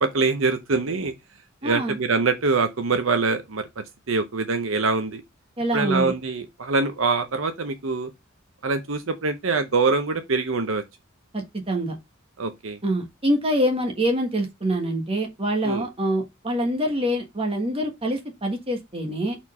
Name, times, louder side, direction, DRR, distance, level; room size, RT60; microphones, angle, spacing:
voice 1, 0.0-1.1 1.6-5.2 5.7-8.1 8.6-10.8 12.4-12.8 15.6-15.9, right 4 dB, 70° right, 0.8 m, -24 dB
voice 2, 1.6-2.0 5.6-6.1 11.3-11.9 12.8-19.4, right 1 dB, 30° right, 1.5 m, -25 dB
4.4 x 4.4 x 5.5 m
head